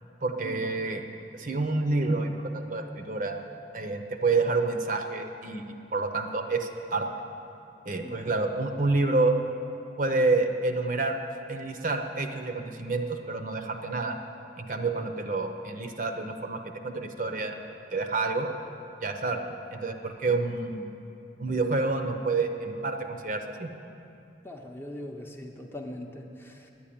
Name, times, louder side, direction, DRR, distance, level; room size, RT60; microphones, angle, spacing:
voice 1, 0.2-1.0 1.3-3.4 3.7-5.6 5.9-7.1 7.9-9.4 10.0-11.2 11.5-14.2 14.6-16.6 16.8-17.6 17.9-18.5 19.0-20.9 21.4-23.7, right 3 dB, 45° right, 5 dB, 0.7 m, -28 dB
voice 2, 8.0-8.4 20.3-20.4 24.4-26.7, left 1 dB, 10° left, 1 dB, 0.7 m, -41 dB
10.0 x 10.0 x 8.6 m, 2.8 s
head